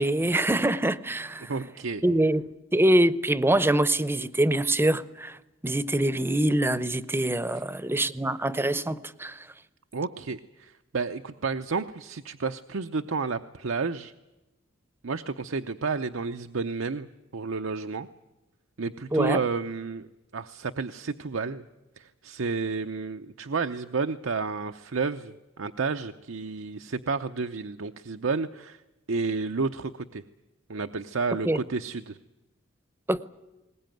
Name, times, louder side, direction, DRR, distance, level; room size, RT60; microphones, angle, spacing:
voice 1, 0.0-1.5 2.0-2.4 2.7-5.4 5.6-9.4 19.1-19.4 31.5-31.6 33.1-33.3, right 1 dB, 10° right, 0.7 m, -24 dB
voice 2, 1.5-2.0 9.9-14.1 15.0-17.1 17.3-18.1 18.8-20.1 20.3-21.6 22.0-28.8 29.1-30.2 30.7-32.2, right 4 dB, 80° right, 0.7 m, -31 dB
21.5 x 19.5 x 9.1 m
head